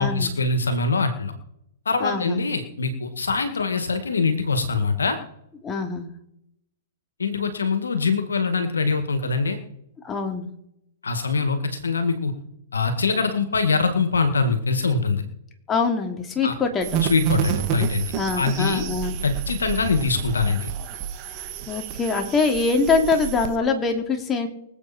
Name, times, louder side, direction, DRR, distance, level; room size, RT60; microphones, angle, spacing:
voice 1, 0.0-1.3 1.9-5.2 7.2-9.6 11.0-12.3 12.7-15.2 16.4-16.5 17.1-18.0 18.4-18.8 19.2-20.7, left 4 dB, 90° left, 9 dB, 1.9 m, -23 dB
voice 2, 2.0-2.5 5.6-6.1 10.0-10.5 15.7-17.0 18.1-19.2 21.3-24.5, left 4 dB, 20° left, 3 dB, 2.9 m, -24 dB
sound 1, 16.8-23.6, right 10 dB, 40° right, 1.7 m, -29 dB
24.5 x 8.3 x 4.4 m, 0.79 s
hypercardioid pair, 120°, 0 cm